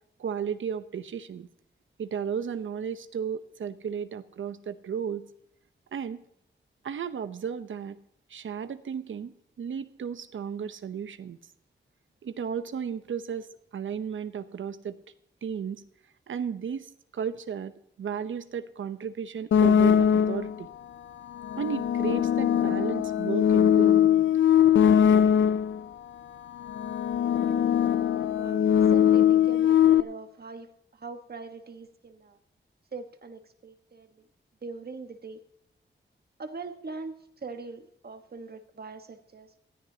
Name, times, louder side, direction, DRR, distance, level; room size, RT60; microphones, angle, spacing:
voice 1, 0.2-1.5 2.0-5.3 5.9-6.2 6.8-8.0 8.3-11.4 12.2-15.0 15.4-15.8 16.3-20.7 21.6-24.3, right 7 dB, 80° right, 12 dB, 0.8 m, -34 dB
sound 1, 19.5-20.6 21.4-25.8 26.6-30.0, left 9 dB, 75° left, 0.5 m, -21 dB
voice 2, 27.4-32.4 32.9-34.3 34.6-35.4 36.4-39.6, right 4 dB, 55° right, 7 dB, 1.4 m, -42 dB
18.0 x 13.5 x 2.9 m, 0.75 s
cardioid pair, 70°, 20 cm